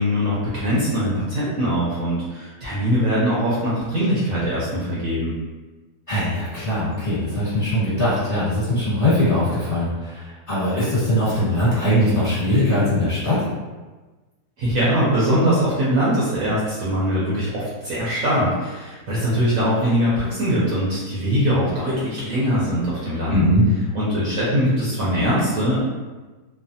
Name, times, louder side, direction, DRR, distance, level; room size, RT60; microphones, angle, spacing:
voice 1, 0.0-5.3 14.6-23.4 23.9-25.8, equal, 65° right, -8 dB, 1.0 m, -22 dB
voice 2, 6.1-13.4 23.3-23.6, left 1 dB, 35° left, -11 dB, 1.4 m, -21 dB
3.2 x 2.0 x 2.6 m, 1.2 s
omnidirectional pair, 1.8 m